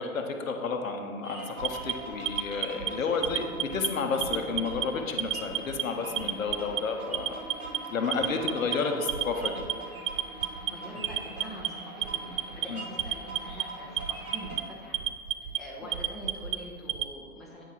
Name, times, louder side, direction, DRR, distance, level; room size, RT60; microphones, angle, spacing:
voice 1, 0.0-7.4 7.9-9.6 11.0-11.1 12.7-12.8, left 4 dB, 65° left, 5 dB, 0.8 m, -31 dB
sound 1, 1.2-14.6, right 2 dB, 75° right, 1.8 m, -42 dB
Alarm, 1.6-2.9 3.2-3.9 4.2-4.9 5.2-5.8 6.2-6.8 7.1-7.8 8.1-8.8 9.1-9.7 10.1-10.7 11.0-11.7 12.0-12.7 13.0-13.6 14.0-14.6 14.9-15.6 15.9-17.1, right 11 dB, 60° right, 0.5 m, -30 dB
voice 2, 2.8-3.4 8.1-9.0 10.7-15.0 15.5-17.6, equal, ahead, -5 dB, 0.7 m, -45 dB
8.6 x 4.6 x 4.2 m, 2.1 s
figure-of-eight pair, 105°, 43 cm